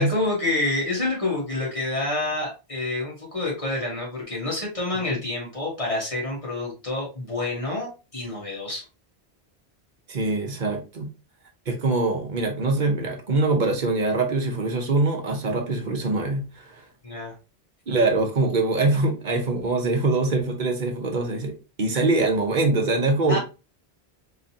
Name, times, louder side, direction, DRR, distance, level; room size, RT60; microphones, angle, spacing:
voice 1, 0.0-8.8 17.0-17.3 23.3-23.4, left 2 dB, 30° left, -3 dB, 1.7 m, -28 dB
voice 2, 10.1-11.1 11.7-16.8 17.9-23.4, right 2 dB, 50° right, 3 dB, 0.9 m, -23 dB
3.8 x 3.0 x 2.7 m, 0.30 s
omnidirectional pair, 1.1 m